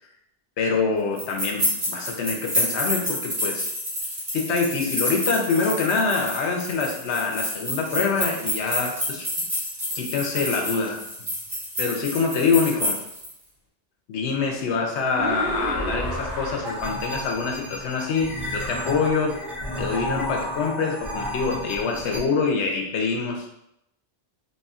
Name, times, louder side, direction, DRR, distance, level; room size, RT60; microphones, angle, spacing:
voice 1, 0.6-3.7 4.3-9.3 9.9-11.0 11.8-13.0 14.1-19.3 19.8-23.5, left 4 dB, 80° left, 2 dB, 1.0 m, -25 dB
Rattling keys sound (from left to right), 1.2-13.3, equal, 40° right, 1.3 m, -29 dB
sound 1, 15.2-22.2, equal, ahead, 1.1 m, -31 dB
4.2 x 3.0 x 2.4 m, 0.80 s
omnidirectional pair, 1.1 m